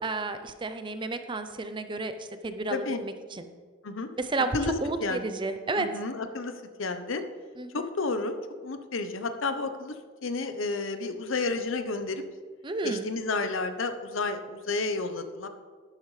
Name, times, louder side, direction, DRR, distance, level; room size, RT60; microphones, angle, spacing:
voice 1, 0.0-2.1 2.4-3.5 4.2-4.5 4.8-5.9 7.6-7.8 12.6-13.1, right 3 dB, 25° right, 9 dB, 0.6 m, -32 dB
voice 2, 2.7-3.0 3.8-4.1 4.5-4.7 5.0-5.2 5.7-6.5 6.8-7.2 7.7-8.4 8.6-9.9 10.2-12.2 12.8-15.5, left 3 dB, 80° left, 9 dB, 0.8 m, -31 dB
11.5 x 10.5 x 3.2 m, 1.5 s
head